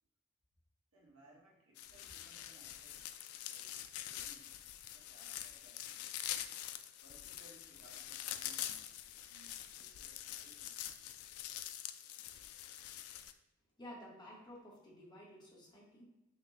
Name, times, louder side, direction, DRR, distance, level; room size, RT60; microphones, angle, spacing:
voice 1, 0.9-3.1 3.5-4.5 4.9-6.1 7.0-10.8, right 1 dB, 75° right, -3 dB, 1.2 m, -64 dB
sound 1, 1.8-13.3, left 11 dB, 80° left, 0.3 m, -45 dB
voice 2, 13.8-16.0, equal, 20° left, -4 dB, 1.0 m, -53 dB
5.7 x 2.2 x 3.1 m, 0.99 s
head